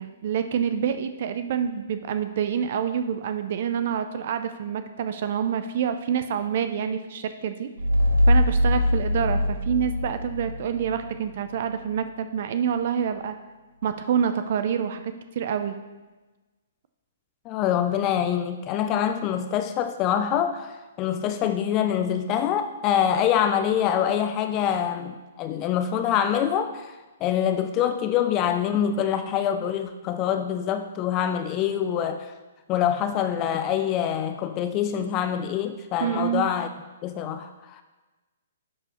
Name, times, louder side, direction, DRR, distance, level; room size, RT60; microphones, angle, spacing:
voice 1, 0.0-7.7 8.3-13.4 13.8-15.8 36.0-36.4, right 8 dB, 55° right, 9 dB, 0.4 m, -27 dB
sound 1, 7.8-11.1, left 1 dB, 90° right, 0.8 m, -22 dB
voice 2, 17.5-27.0 27.2-32.3 32.7-36.7 37.0-37.8, left 9 dB, 30° left, 8 dB, 0.4 m, -25 dB
9.8 x 4.7 x 3.0 m, 1.2 s
hypercardioid pair, 130°, 0 cm